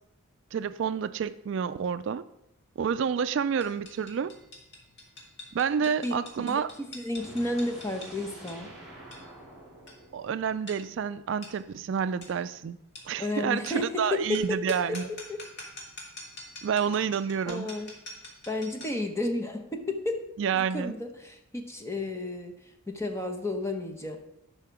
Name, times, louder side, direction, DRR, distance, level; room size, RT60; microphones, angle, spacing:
voice 1, 0.5-2.2 2.8-4.3 5.5-6.7 10.1-12.8 13.1-15.1 16.6-17.7 20.4-20.9, right 7 dB, 60° right, 13 dB, 0.3 m, -29 dB
sound 1, 3.6-19.1, left 1 dB, 50° left, 2.1 m, -47 dB
voice 2, 6.0-8.7 13.2-14.4 14.9-15.0 15.3-15.4 17.5-17.9 18.5-24.2, left 2 dB, 15° left, 4 dB, 0.9 m, -32 dB
sound 2, 7.1-11.1, right 1 dB, 5° right, 2.9 m, -48 dB
10.5 x 5.7 x 4.7 m, 0.83 s
head